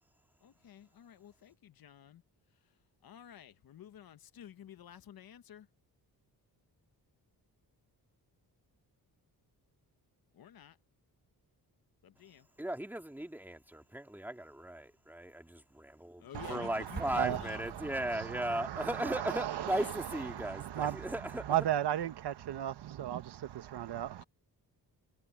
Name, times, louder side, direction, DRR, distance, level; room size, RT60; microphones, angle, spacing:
voice 1, 0.4-2.2 3.0-5.7 10.3-10.8 12.0-12.5 16.2-17.6 19.5-20.3, left 10 dB, 65° left, 1.3 m, -51 dB
voice 2, 12.6-21.5, right 1 dB, 5° right, 2.3 m, -37 dB
voice 3, 16.3-24.2, right 11 dB, 85° right, 1.5 m, -36 dB
Explosion, 16.9-18.7, right 4 dB, 25° right, 1.7 m, -46 dB
wide cardioid pair, 150°, 39 cm